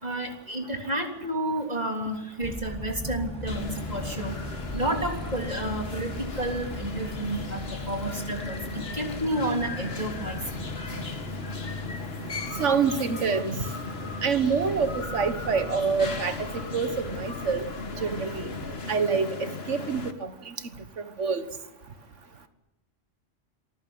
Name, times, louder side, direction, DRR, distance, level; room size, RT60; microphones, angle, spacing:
voice 1, 0.0-4.4 4.7-10.6, right 1 dB, 35° right, 3 dB, 3.4 m, -31 dB
Motorcycle, 2.4-18.9, left 1 dB, 5° left, 1.3 m, -40 dB
sound 1, 3.5-20.1, left 3 dB, 55° left, 2.0 m, -37 dB
voice 2, 12.6-13.6 14.2-17.7 18.0-18.5 18.9-20.6 21.2-21.4, right 5 dB, 85° right, 10 dB, 1.8 m, -26 dB
26.5 x 15.0 x 9.6 m, 0.96 s
omnidirectional pair, 1.2 m